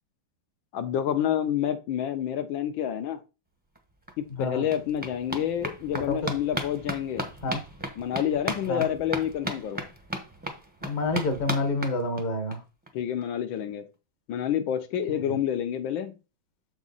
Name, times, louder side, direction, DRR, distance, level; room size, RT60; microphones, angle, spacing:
voice 1, 0.7-3.2 4.2-7.3 8.0-9.8 12.9-13.8 14.3-16.1, left 10 dB, 80° left, 1.5 m, -28 dB
sound 1, 3.8-3.9 4.1-12.6 12.9-13.0 13.2-13.3 13.6-13.7, right 1 dB, 10° right, 0.6 m, -36 dB
voice 2, 4.3-4.7 5.9-6.3 7.4-7.6 8.7-8.8 10.8-12.6 15.3-15.4, left 2 dB, 35° left, 0.8 m, -28 dB
7.2 x 4.7 x 4.0 m
omnidirectional pair, 2.1 m